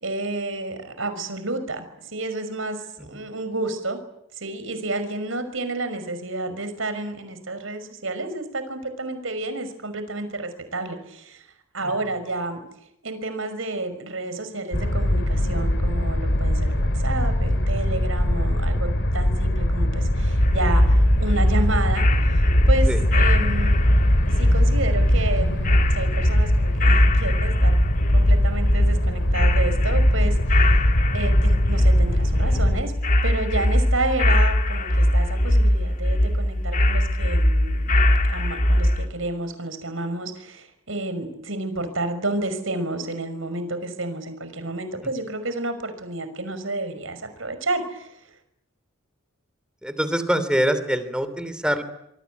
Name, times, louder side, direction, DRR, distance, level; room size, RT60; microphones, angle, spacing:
voice 1, 0.0-4.0 4.4-11.4 11.7-12.6 13.0-23.8 24.3-27.8 28.1-30.8 31.1-32.9 33.2-38.0 38.3-48.1, right 2 dB, 75° right, 9 dB, 5.8 m, -30 dB
sound 1, 14.7-32.8, left 1 dB, 60° left, 2.4 m, -23 dB
sound 2, 20.4-39.1, left 1 dB, 40° left, 2.0 m, -20 dB
voice 2, 31.0-31.3 49.8-51.8, equal, 5° right, 12 dB, 3.0 m, -24 dB
26.0 x 23.5 x 9.5 m, 0.80 s
head